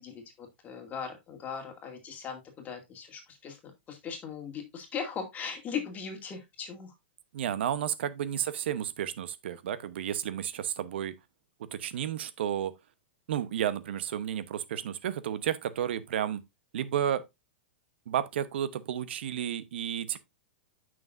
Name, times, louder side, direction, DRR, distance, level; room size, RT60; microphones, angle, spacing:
voice 1, 0.0-6.9, left 6 dB, 25° left, 2.3 m, -39 dB
voice 2, 7.3-11.1 11.7-12.7 13.3-16.4 16.7-17.2 18.1-20.2, right 10 dB, 70° right, 0.9 m, -32 dB
9.2 x 6.1 x 2.6 m
hypercardioid pair, 120°, 6 cm